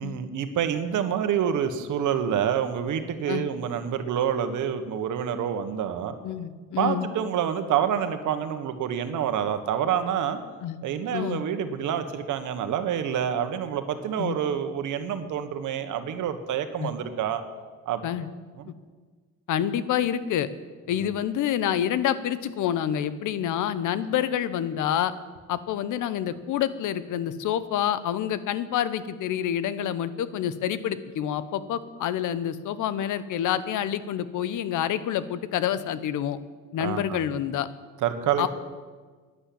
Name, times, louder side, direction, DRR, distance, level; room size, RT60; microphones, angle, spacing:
voice 1, 0.0-6.1 6.8-10.4 10.8-17.4 17.8-18.0 18.6-18.7 21.0-21.1 36.8-37.3 38.0-38.5, right 9 dB, 80° right, 9 dB, 1.4 m, -27 dB
voice 2, 6.2-7.1 10.6-10.8 11.1-11.4 14.2-14.4 16.8-16.9 18.0-18.3 19.5-20.5 20.9-25.1 25.5-36.4 36.7-37.7 38.4-38.5, left 10 dB, 80° left, 15 dB, 0.9 m, -27 dB
11.5 x 10.0 x 8.6 m, 1.5 s
cardioid pair, 90°, 30 cm